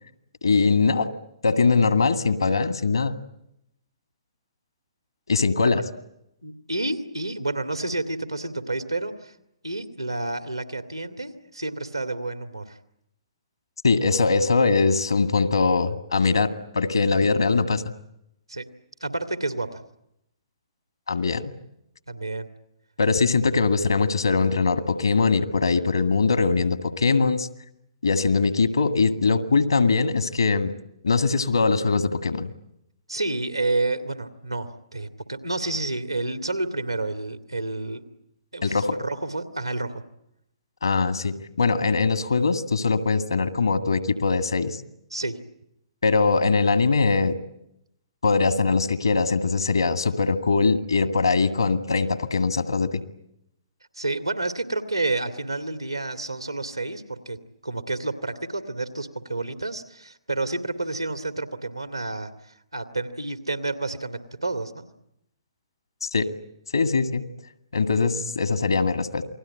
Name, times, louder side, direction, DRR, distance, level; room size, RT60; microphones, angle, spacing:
voice 1, 0.4-1.1 1.4-3.2 5.3-5.8 13.8-17.8 21.1-21.5 23.0-27.5 28.0-30.7 31.0-32.5 38.6-38.9 40.8-44.8 46.0-47.4 48.2-53.0 66.0-66.3 66.7-67.3 67.7-69.2, left 4 dB, 70° left, 9 dB, 2.0 m, -22 dB
voice 2, 6.4-9.3 9.6-12.8 18.5-18.6 19.0-19.8 22.1-22.5 33.1-38.0 38.5-40.0 45.1-45.4 53.9-64.9, right 2 dB, 85° right, 7 dB, 2.3 m, -30 dB
28.5 x 20.5 x 8.9 m, 0.81 s
figure-of-eight pair, 120°, 3 cm